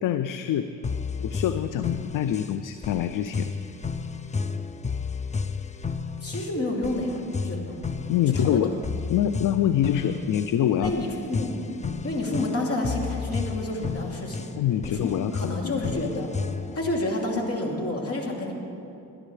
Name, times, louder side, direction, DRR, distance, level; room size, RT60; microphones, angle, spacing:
voice 1, 0.0-0.8 1.2-3.5 8.1-8.8 9.1-10.9 14.6-16.0, left 10 dB, 65° left, 11 dB, 0.6 m, -25 dB
sound 1, 0.8-16.9, left 5 dB, 20° left, 0.6 m, -32 dB
voice 2, 6.2-7.8 8.3-8.6 10.8-11.5 12.0-14.5 14.9-16.3 16.7-18.5, left 1 dB, 40° left, -1 dB, 2.9 m, -29 dB
21.0 x 11.0 x 3.3 m, 2.7 s
supercardioid pair, 60°, 36 cm